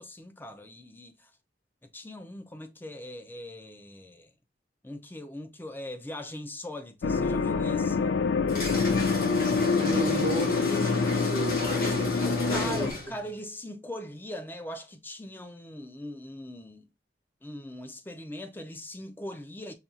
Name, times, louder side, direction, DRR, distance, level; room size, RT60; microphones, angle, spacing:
voice 1, 0.0-1.3 1.9-4.3 4.8-8.1 12.3-16.8 17.4-19.7, left 1 dB, 10° left, 0.4 m, -41 dB
sound 1, 7.0-12.9, left 5 dB, 90° left, 0.4 m, -26 dB
sound 2, 8.5-13.2, left 2 dB, 55° left, 1.7 m, -32 dB
voice 2, 9.8-12.9, right 1 dB, 35° right, 0.6 m, -34 dB
5.7 x 2.3 x 2.5 m
head